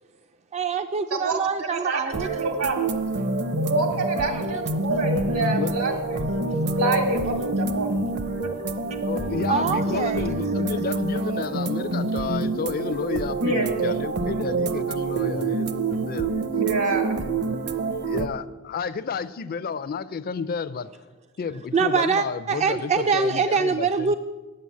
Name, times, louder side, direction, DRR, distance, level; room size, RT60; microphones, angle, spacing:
voice 1, 0.5-2.3 4.2-4.6 8.9-9.0 9.5-10.3 12.1-12.3 21.7-24.2, right 5 dB, 30° right, 8 dB, 0.4 m, -24 dB
voice 2, 1.7-2.8 3.5-6.4 6.7-7.9 8.4-8.5 13.4-13.7 16.6-17.3, right 2 dB, 80° right, 3 dB, 2.1 m, -26 dB
sound 1, 2.1-18.3, right 3 dB, 50° right, 0.7 m, -27 dB
voice 3, 9.1-16.3 18.1-21.1 21.4-24.2, left 5 dB, 40° left, 13 dB, 0.4 m, -31 dB
9.1 x 7.7 x 8.3 m, 1.2 s
head